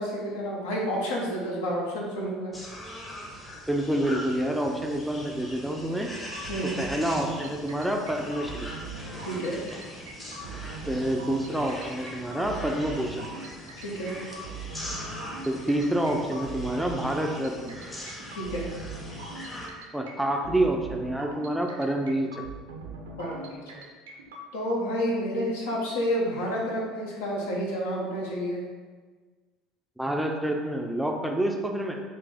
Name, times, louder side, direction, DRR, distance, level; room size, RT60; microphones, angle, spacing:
voice 1, 0.0-2.5 6.5-6.8 9.2-9.6 13.8-14.2 18.3-18.7 23.2-23.8 24.5-28.6, equal, 70° left, -3 dB, 0.8 m, -30 dB
sound 1, 2.5-19.7, equal, 20° left, 0.9 m, -41 dB
voice 2, 3.7-6.1 6.8-8.7 10.9-13.3 15.5-17.8 19.9-22.3 30.0-31.9, right 1 dB, 5° right, 2 dB, 0.4 m, -28 dB
sound 2, 6.3-24.4, right 3 dB, 75° right, 0.5 m, -41 dB
4.0 x 2.7 x 3.5 m, 1.4 s
figure-of-eight pair, 65°, 0 cm